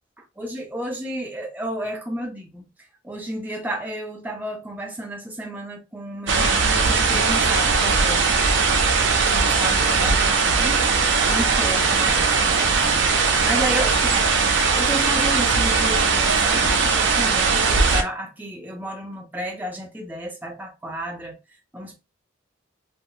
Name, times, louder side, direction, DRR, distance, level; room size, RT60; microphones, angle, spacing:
voice 1, 0.4-2.7 3.0-8.3 9.2-10.9 11.2-14.3 14.5-21.4 21.7-22.0, right 1 dB, 10° right, 0.5 m, -32 dB
sound 1, 6.3-18.0, right 4 dB, 70° right, 0.5 m, -19 dB
2.4 x 2.1 x 3.0 m
head